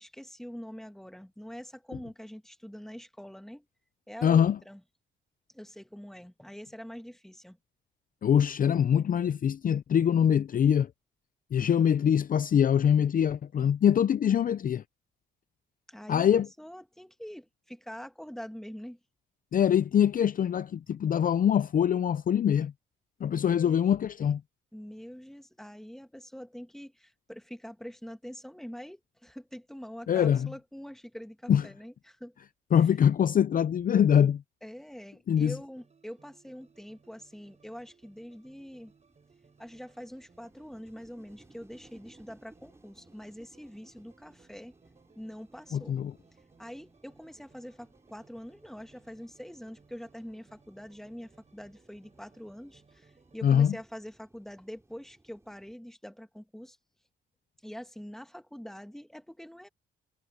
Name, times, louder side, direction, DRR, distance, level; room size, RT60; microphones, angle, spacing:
voice 1, 0.0-3.7 4.1-4.8 5.5-7.6 15.9-16.3 16.6-19.0 23.5-23.8 24.7-32.3 32.8-32.9 34.6-38.9 39.6-44.7 45.2-46.0 46.6-56.8 57.6-59.7, equal, ahead, 2.2 m, -45 dB
voice 2, 4.2-4.6 8.2-10.9 11.5-14.8 16.1-16.5 19.5-22.7 23.2-24.4 30.1-30.5 31.5-31.6 32.7-34.4 35.3-35.5 45.7-46.1 53.4-53.7, left 9 dB, 45° left, 0.6 m, -23 dB
sound 1, 35.6-53.7, right 5 dB, 35° right, 4.7 m, -64 dB
sound 2, 36.7-55.7, right 2 dB, 15° right, 5.3 m, -63 dB
cardioid pair, 90°, 20 cm